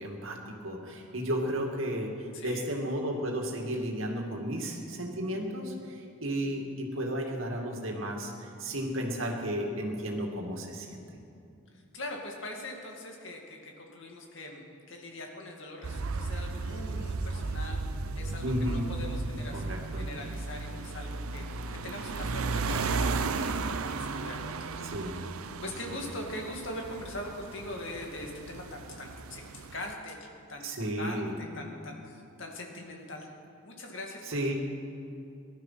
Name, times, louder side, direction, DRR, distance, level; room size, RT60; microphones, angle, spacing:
voice 1, 0.0-11.2 18.4-18.8 19.5-20.1 24.8-25.3 25.9-26.1 30.6-31.7 34.3-34.5, equal, 70° right, 1 dB, 2.3 m, -33 dB
voice 2, 2.3-2.7 11.7-17.8 18.2-19.6 19.9-21.4 21.7-24.7 25.6-30.7 31.0-33.3 33.6-34.5, left 1 dB, 60° left, 1 dB, 2.3 m, -42 dB
sound 1, 15.8-29.9, right 4 dB, 90° right, 0.7 m, -35 dB
19.5 x 12.0 x 5.8 m, 2.7 s
head